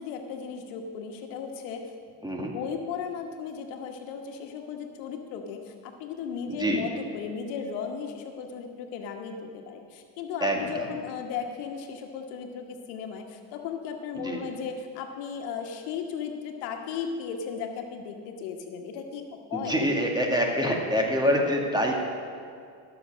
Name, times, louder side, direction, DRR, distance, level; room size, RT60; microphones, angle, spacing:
voice 1, 0.0-1.8 2.5-19.2 19.5-19.7, left 6 dB, 85° left, 4 dB, 1.4 m, -36 dB
voice 2, 2.2-2.5 6.5-6.8 10.4-11.0 14.1-14.4 19.5-21.9, equal, 10° right, 0 dB, 1.8 m, -26 dB
13.0 x 6.9 x 6.3 m, 2.3 s
supercardioid pair, 100°, 48 cm